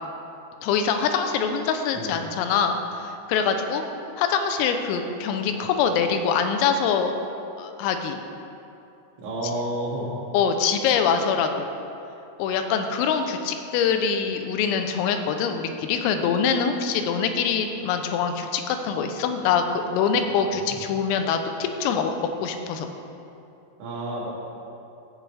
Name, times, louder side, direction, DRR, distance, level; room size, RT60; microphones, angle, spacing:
voice 1, 0.6-3.8 4.2-7.1 7.6-8.2 10.3-11.7 12.4-22.1 22.4-22.9, left 6 dB, 90° left, 6 dB, 3.5 m, -24 dB
voice 2, 9.2-10.1 20.5-20.8 23.8-24.3, right 1 dB, 65° right, -6 dB, 4.5 m, -30 dB
17.0 x 11.0 x 3.5 m, 2.8 s
omnidirectional pair, 5.8 m